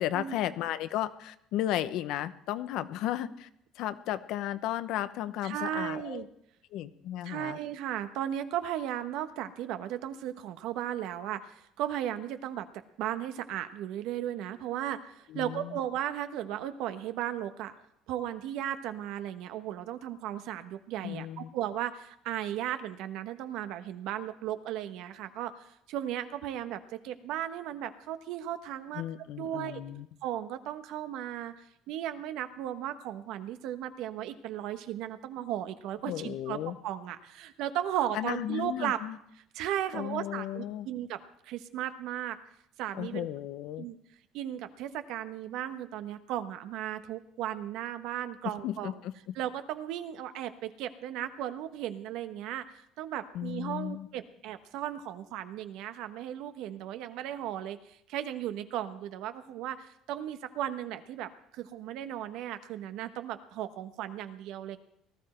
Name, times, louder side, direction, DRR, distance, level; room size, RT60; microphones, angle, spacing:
voice 1, 0.0-3.5 3.8-6.3 6.7-7.6 15.3-15.8 21.0-21.5 28.9-30.1 36.1-36.8 38.1-39.2 39.9-40.9 42.9-43.9 48.4-49.3 53.3-54.1, left 12 dB, 70° left, 13 dB, 0.8 m, -34 dB
voice 2, 5.4-6.3 7.2-12.7 13.0-17.7 18.1-29.0 29.4-29.8 30.2-31.5 31.9-36.6 36.8-39.0 39.5-42.4 42.8-43.3 43.8-44.0 44.3-49.0 49.3-64.8, right 11 dB, 75° right, 10 dB, 1.1 m, -36 dB
18.5 x 13.0 x 4.4 m, 0.74 s
cardioid pair, 120°, 0 cm